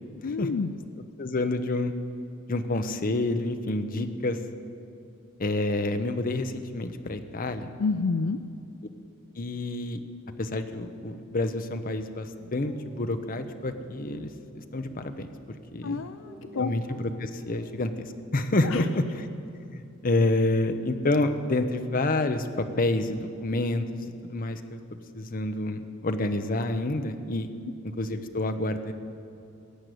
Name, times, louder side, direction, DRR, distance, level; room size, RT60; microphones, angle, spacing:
voice 1, 0.2-0.7 7.8-8.4 15.8-16.7 18.6-18.9, left 4 dB, 65° left, 10 dB, 0.4 m, -29 dB
voice 2, 1.2-1.9 2.5-4.4 5.4-7.7 9.4-10.0 10.4-15.3 15.7-16.0 16.5-16.8 17.2-18.1 18.3-19.3 19.7-24.0 24.3-24.8 25.1-27.5 28.0-28.9, left 2 dB, 45° left, 8 dB, 0.8 m, -28 dB
sound 1, 12.4-15.8 16.2-17.8, equal, 10° right, 3.0 m, -51 dB
16.5 x 6.6 x 9.3 m, 2.6 s
head